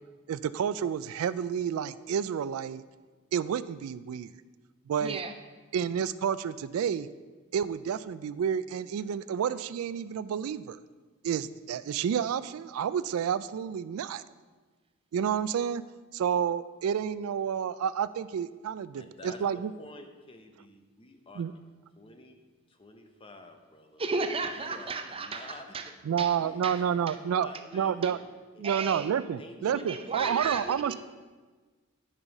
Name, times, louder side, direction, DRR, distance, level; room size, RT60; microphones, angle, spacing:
voice 1, 0.3-2.8 3.3-4.3 4.9-5.2 5.7-7.1 7.5-10.8 11.2-14.2 15.1-15.8 16.1-19.7 21.4-21.5 26.1-28.2 28.6-31.0, right 8 dB, 80° right, 15 dB, 0.3 m, -30 dB
voice 2, 5.0-5.3 24.0-25.9 26.2-26.4 26.6-26.8 27.1-27.2 28.0-28.1 28.6-29.1 29.7-31.0, right 4 dB, 25° right, 7 dB, 0.6 m, -34 dB
voice 3, 18.9-19.4 19.8-21.4 21.9-22.4 22.7-24.0 24.5-25.8 26.4-28.3 28.5-29.0 29.4-31.0, left 2 dB, 25° left, 5 dB, 0.8 m, -49 dB
9.8 x 5.5 x 5.3 m, 1.4 s
head